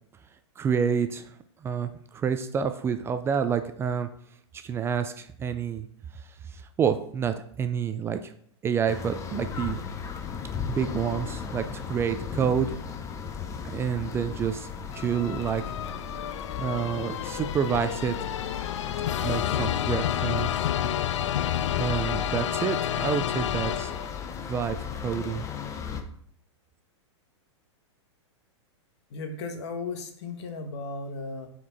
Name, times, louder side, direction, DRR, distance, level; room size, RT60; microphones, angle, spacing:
voice 1, 0.6-1.3 1.6-4.1 4.5-5.9 6.1-8.3 8.6-9.8 10.7-12.7 13.6-14.7 14.9-15.6 16.6-18.1 19.2-20.7 21.0-21.1 21.8-23.9 24.5-25.4, right 7 dB, 15° right, 9 dB, 0.4 m, -28 dB
sound 1, 8.9-26.0, left 6 dB, 20° left, 0.7 m, -36 dB
sound 2, 14.9-24.4, left 11 dB, 85° left, 0.4 m, -30 dB
voice 2, 29.1-31.5, left 3 dB, 65° left, 6 dB, 1.4 m, -35 dB
7.3 x 4.5 x 4.1 m, 0.64 s
hypercardioid pair, 135°, 15 cm